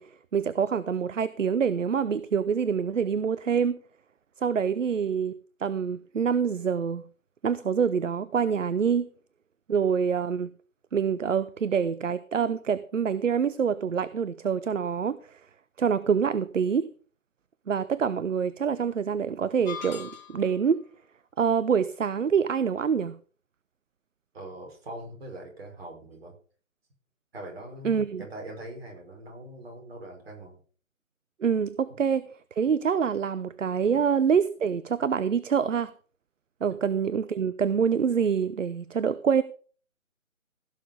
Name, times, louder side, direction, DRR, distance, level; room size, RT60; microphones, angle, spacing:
voice 1, 0.0-3.8 4.4-5.3 5.6-7.0 7.4-9.1 9.7-10.5 10.9-15.4 15.8-16.9 17.7-20.9 21.4-23.2 27.8-28.2 31.4-32.3 32.5-35.9 36.6-39.4, right 7 dB, 65° right, 0.7 m, -26 dB
sound 1, 19.6-20.6, left 7 dB, 35° left, 4.4 m, -40 dB
voice 2, 24.3-26.4 27.3-30.6 36.7-36.8, right 1 dB, 45° right, 5.5 m, -42 dB
16.0 x 6.8 x 5.1 m
figure-of-eight pair, 150°, 41 cm